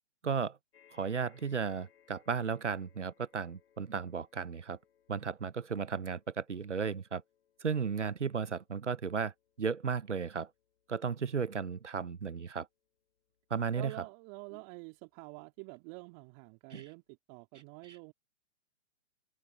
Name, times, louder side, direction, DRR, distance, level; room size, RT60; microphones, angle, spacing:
voice 1, 0.2-0.6 0.9-4.8 5.1-7.2 7.6-9.3 9.6-10.5 10.9-12.7 13.5-13.9 16.7-16.8, right 6 dB, 85° right, 1.1 m, -34 dB
sound 1, 0.7-15.3 16.0-16.1 16.4-16.5, left 9 dB, 60° left, 7.2 m, -70 dB
voice 2, 13.7-18.1, right 36 dB, 30° right, 2.1 m, -47 dB
figure-of-eight pair, 120°, 35 cm